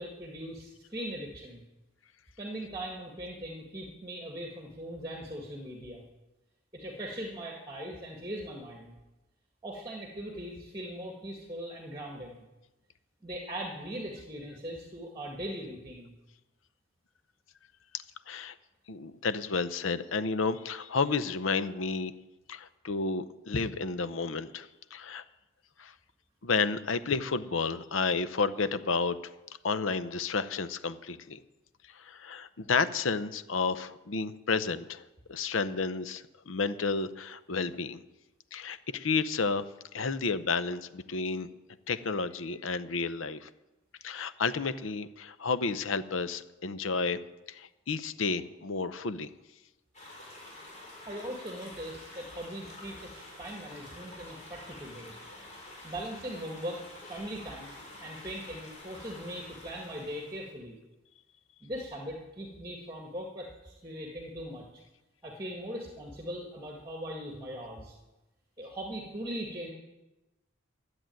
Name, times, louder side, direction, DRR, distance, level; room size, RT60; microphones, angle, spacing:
voice 1, 0.0-1.6 2.4-6.0 6.7-8.9 9.6-12.5 13.2-16.1 51.1-55.1 55.8-56.8 57.1-57.7 58.0-60.8 61.6-64.7 65.2-67.9 68.6-69.7, equal, 20° right, 0 dB, 1.9 m, -40 dB
voice 2, 18.9-22.1 22.5-25.2 25.8-25.9 26.4-29.2 29.6-31.4 31.9-35.0 35.3-38.0 38.5-39.6 39.9-41.5 41.9-43.5 44.0-47.2 47.5-49.3, left 4 dB, 80° left, 13 dB, 0.7 m, -31 dB
sound 1, 49.9-60.5, left 1 dB, 35° left, 4.5 m, -48 dB
13.0 x 7.9 x 9.0 m, 1.0 s
head